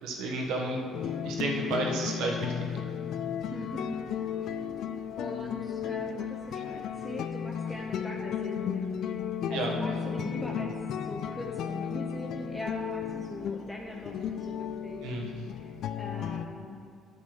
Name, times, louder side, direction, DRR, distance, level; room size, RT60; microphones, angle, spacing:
voice 1, 0.0-0.8 1.2-2.5 9.5-9.7 15.0-15.3, right 2 dB, 70° right, 0 dB, 1.4 m, -31 dB
sound 1, 0.9-16.5, left 8 dB, 65° left, 0.4 m, -34 dB
voice 2, 3.5-4.0 4.4-4.6 5.2-15.0 15.5-16.8, equal, 5° left, -3 dB, 1.2 m, -41 dB
9.5 x 6.2 x 4.8 m, 2.5 s
hypercardioid pair, 55°, 0 cm